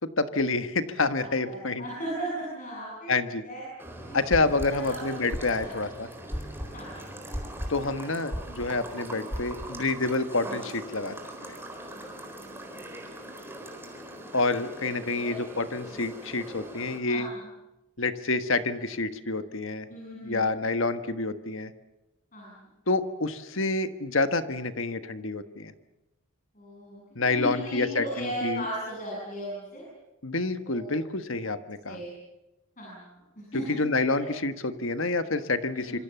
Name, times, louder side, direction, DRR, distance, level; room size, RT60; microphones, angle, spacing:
voice 1, 0.0-1.8 3.1-3.4 4.1-6.1 7.7-11.2 11.5-11.6 14.3-17.3 18.0-19.9 20.2-21.7 22.9-25.7 27.1-28.6 30.2-32.0 33.5-36.0, left 3 dB, 60° left, 10 dB, 1.4 m, -28 dB
voice 2, 1.1-3.1 3.4-3.6 4.1-4.2 4.7-5.0 5.6-5.7 6.7-7.0 11.8-12.6 15.1-15.4 17.1-17.4 19.9-20.6 22.3-22.7 26.5-27.0 27.3-29.8 30.6-30.9 31.9-32.1 32.8-33.8 34.2-34.3 35.8-36.0, right 1 dB, 40° left, -4 dB, 7.9 m, -37 dB
sound 1, 3.8-10.4, equal, 10° left, 2.4 m, -39 dB
sound 2, 3.8-17.0, right 1 dB, 10° right, 4.0 m, -42 dB
26.0 x 25.5 x 7.1 m, 0.98 s
head